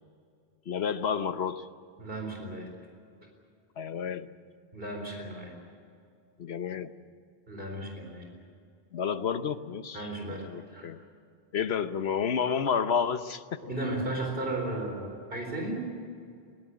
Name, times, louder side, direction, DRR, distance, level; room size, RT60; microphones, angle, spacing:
voice 1, 0.7-1.7 3.8-4.3 6.4-6.9 8.9-11.0 11.5-13.6, left 7 dB, 90° left, 11 dB, 1.2 m, -30 dB
voice 2, 2.0-2.7 4.7-5.5 7.5-8.3 9.9-10.9 13.6-15.8, right 2 dB, 65° right, 1 dB, 4.5 m, -35 dB
21.0 x 18.0 x 9.9 m, 2.3 s
omnidirectional pair, 1.0 m